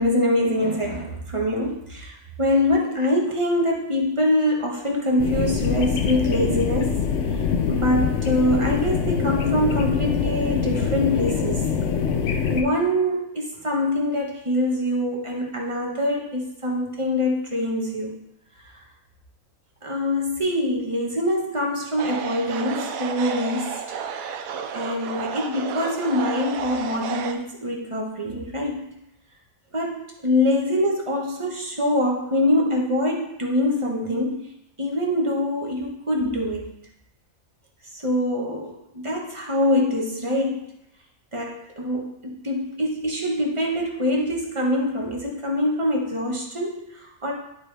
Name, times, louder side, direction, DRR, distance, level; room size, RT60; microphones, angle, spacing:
voice 1, 0.0-7.1 7.7-11.7 12.5-18.1 19.8-23.7 24.7-28.9 29.7-34.5 34.8-36.7 37.9-40.7 41.3-47.3, left 1 dB, 25° right, -1 dB, 1.2 m, -24 dB
sound 1, 5.2-12.6, left 6 dB, 65° left, 1.0 m, -24 dB
sound 2, 22.0-27.3, right 7 dB, 80° right, 1.1 m, -32 dB
11.0 x 4.5 x 3.3 m, 0.82 s
omnidirectional pair, 1.4 m